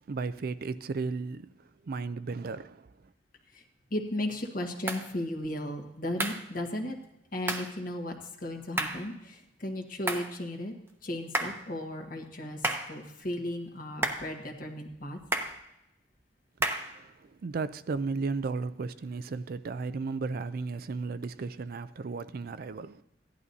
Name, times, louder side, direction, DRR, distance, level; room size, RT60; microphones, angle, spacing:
voice 1, 0.1-1.5 1.8-2.9 16.7-23.0, right 4 dB, 55° right, 0.4 m, -35 dB
voice 2, 3.9-7.0 7.3-8.1 8.4-10.7 11.0-12.6 12.9-15.2, left 1 dB, 50° left, 1.6 m, -35 dB
sound 1, 4.9-5.1 6.2-6.5 7.5-7.7 8.8-9.1 10.1-10.3 11.3-11.7 12.6-13.0 14.0-14.3 15.3-15.6 16.6-16.9, right 2 dB, 15° right, 0.9 m, -31 dB
16.5 x 11.0 x 2.7 m
head